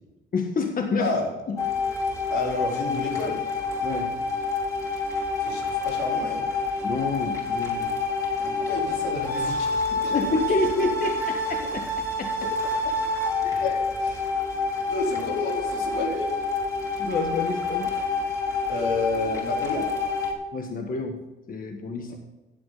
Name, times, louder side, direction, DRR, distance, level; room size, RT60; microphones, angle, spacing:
voice 1, 0.3-1.1 1.5-1.6 3.8-4.2 6.8-7.9 9.9-12.3 13.4-13.8 17.0-17.9 20.5-21.2 21.5-22.1, left 3 dB, 45° left, 4 dB, 1.4 m, -28 dB
voice 2, 1.0-1.3 2.3-3.4 5.4-6.4 8.4-9.7 10.0-10.2 13.6-14.3 14.5-16.4 18.7-19.9 22.1-22.2, left 2 dB, 90° left, -1 dB, 4.1 m, -30 dB
sound 1, 1.6-20.3, left 3 dB, 15° left, 4.4 m, -28 dB
16.5 x 8.4 x 4.0 m, 1.1 s
cardioid pair, 90°, 20 cm